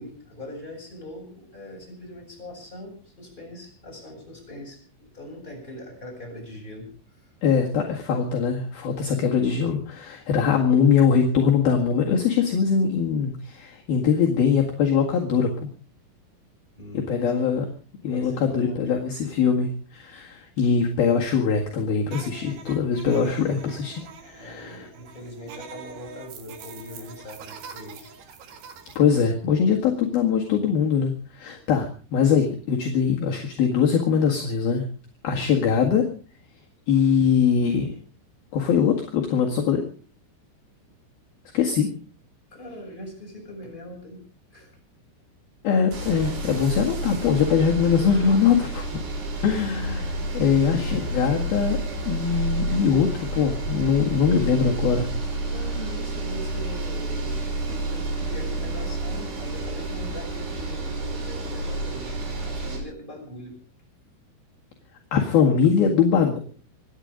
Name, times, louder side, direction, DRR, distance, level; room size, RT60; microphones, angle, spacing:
voice 1, 0.0-7.2 16.8-17.2 18.0-19.0 24.4-28.1 31.4-31.6 42.5-44.2 44.5-44.7 49.6-49.7 50.4-51.0 52.2-52.3 55.5-62.2 62.4-63.6, left 1 dB, 10° left, -1 dB, 7.8 m, -41 dB
voice 2, 7.4-15.7 16.9-17.7 18.0-24.9 29.0-34.9 35.2-36.0 36.9-38.0 38.5-39.8 41.5-41.9 45.6-49.0 49.4-51.8 52.1-55.1 65.1-66.4, left 6 dB, 60° left, -1 dB, 3.4 m, -22 dB
sound 1, 22.1-29.0, right 7 dB, 60° right, 3.6 m, -44 dB
sound 2, 45.9-48.4, right 4 dB, 40° right, 2.2 m, -45 dB
sound 3, 45.9-62.8, right 2 dB, 85° right, 7.6 m, -30 dB
26.5 x 10.5 x 5.2 m, 0.40 s
omnidirectional pair, 5.3 m